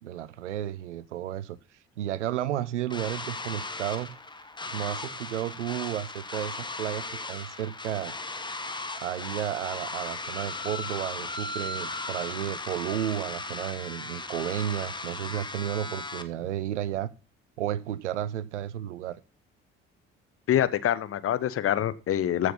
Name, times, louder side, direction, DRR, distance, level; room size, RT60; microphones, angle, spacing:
voice 1, 0.0-1.6 2.0-4.1 4.7-8.1 9.0-17.1 17.6-19.2, right 11 dB, 75° right, 0.7 m, -32 dB
sound 1, 2.9-16.2, left 3 dB, 10° left, 1.4 m, -37 dB
voice 2, 20.5-22.5, left 11 dB, 40° left, 1.0 m, -25 dB
14.5 x 6.5 x 5.6 m
figure-of-eight pair, 50°, 36 cm